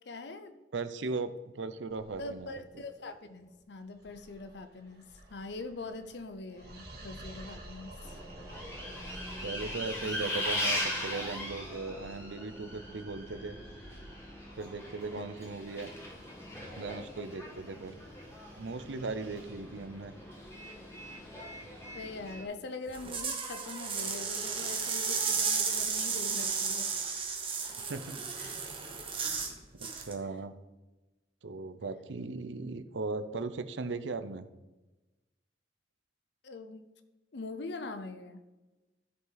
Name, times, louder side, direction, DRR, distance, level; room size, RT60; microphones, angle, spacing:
voice 1, 0.1-0.6 2.2-8.2 10.0-10.1 15.2-15.3 21.9-27.1 28.4-28.5 36.4-36.9 37.3-38.4, left 3 dB, 65° left, 10 dB, 0.7 m, -43 dB
voice 2, 0.7-2.6 9.4-13.6 14.6-15.9 16.7-18.0 18.5-20.1 27.9-28.2 29.7-30.5 31.4-34.5, right 3 dB, 90° right, 12 dB, 0.7 m, -38 dB
sound 1, 1.9-21.6, right 1 dB, 60° right, 1.8 m, -54 dB
Bus, 8.0-22.4, left 1 dB, 15° left, 1.8 m, -40 dB
sound 2, 22.9-29.5 29.8-30.1, right 5 dB, 30° right, 1.3 m, -33 dB
14.0 x 5.3 x 4.0 m, 1.1 s
head